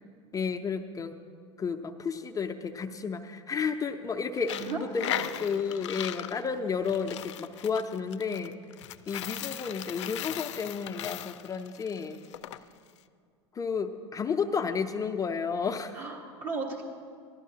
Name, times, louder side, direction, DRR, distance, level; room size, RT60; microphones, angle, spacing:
voice 1, 0.3-1.2 1.6-8.6 9.1-12.2 13.5-16.1, left 5 dB, 25° left, 5 dB, 0.5 m, -32 dB
Coin (dropping), 4.4-12.6, left 12 dB, 75° left, 0.4 m, -38 dB
voice 2, 4.5-5.3 15.9-16.8, right 3 dB, 55° right, -1 dB, 1.4 m, -36 dB
15.0 x 12.0 x 2.8 m, 2.1 s
hypercardioid pair, 90°, 15 cm